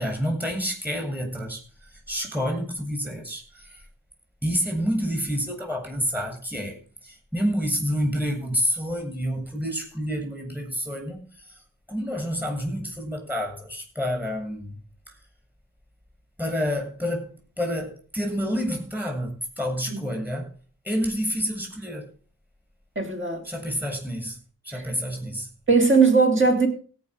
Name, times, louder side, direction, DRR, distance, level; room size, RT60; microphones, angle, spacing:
voice 1, 0.0-3.8 4.4-14.7 15.1-15.2 16.4-20.5 20.8-22.1 23.4-24.4 24.6-25.5, equal, 5° right, 7.8 m, -29 dB
voice 2, 23.0-23.4 25.7-26.7, right 4 dB, 35° right, 3.5 m, -18 dB
17.0 x 6.0 x 6.6 m
cardioid pair, 70°, 34 cm